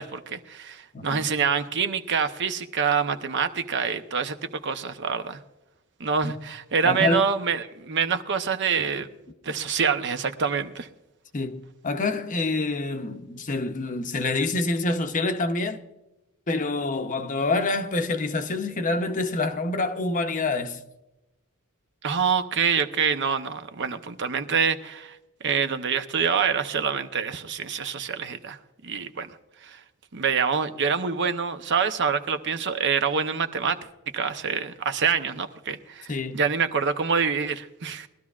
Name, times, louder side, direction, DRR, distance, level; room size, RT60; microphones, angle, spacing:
voice 1, 0.0-5.4 6.0-9.1 9.4-10.9 22.0-25.2 25.4-28.6 28.8-29.3 29.6-29.8 30.1-33.8 34.1-38.1, right 6 dB, 55° right, 0.7 m, -26 dB
voice 2, 0.9-1.3 6.2-6.3 6.8-7.2 11.3-15.8 16.5-20.8 36.1-36.4, left 3 dB, 35° left, 0.7 m, -27 dB
21.5 x 12.5 x 2.4 m
head